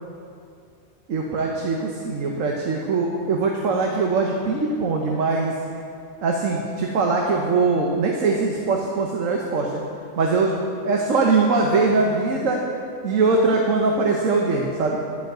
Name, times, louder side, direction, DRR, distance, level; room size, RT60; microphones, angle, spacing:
voice 1, 1.1-5.5 6.2-9.8 10.2-10.5 10.8-12.6 13.0-15.0, right 3 dB, 80° right, 0 dB, 1.3 m, -21 dB
12.0 x 5.8 x 7.8 m, 2.5 s
omnidirectional pair, 1.3 m